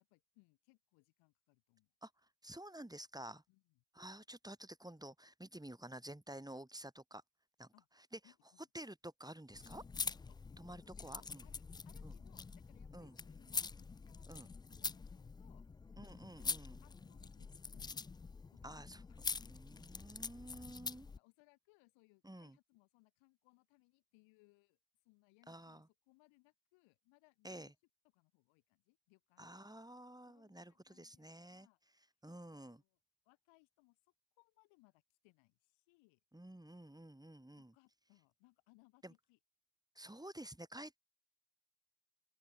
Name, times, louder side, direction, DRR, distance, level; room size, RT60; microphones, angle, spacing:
voice 1, 0.0-1.9 3.5-3.8 7.7-7.9 8.2-8.7 10.3-10.4 11.0-15.7 15.9-16.1 16.4-16.5 16.8-18.0 18.5-18.9 20.3-20.7 21.2-24.8 25.0-27.7 28.1-29.6 30.2-31.8 32.5-33.0 33.3-34.0 34.4-36.2 37.6-39.4, left 26 dB, 70° left, 7.5 m, -71 dB
voice 2, 2.4-3.4 3.9-7.2 7.6-7.7 8.1-8.2 8.7-9.8 10.6-11.4 12.0-12.1 12.9-13.2 14.3-14.5 16.0-16.8 18.6-19.0 19.5-21.1 22.2-22.6 25.5-25.9 27.4-27.7 29.4-31.7 32.2-32.8 36.3-37.7 39.0-39.1 40.0-41.0, right 1 dB, 10° right, 4.0 m, -51 dB
sound 1, 9.5-21.2, left 4 dB, 10° left, 0.3 m, -45 dB
open air
figure-of-eight pair, 40°, 48 cm